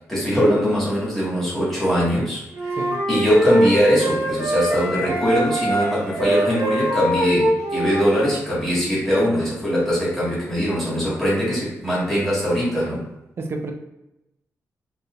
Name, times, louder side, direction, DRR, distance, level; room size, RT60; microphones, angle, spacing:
voice 1, 0.1-2.8 3.1-13.1, equal, 5° left, -9 dB, 1.4 m, -21 dB
sound 1, 2.5-8.3, right 1 dB, 85° right, 1.1 m, -23 dB
voice 2, 2.8-3.1 5.1-5.2 13.4-13.7, right 3 dB, 45° right, 3 dB, 0.4 m, -30 dB
3.2 x 2.7 x 2.3 m, 0.89 s
wide cardioid pair, 145°, 6 cm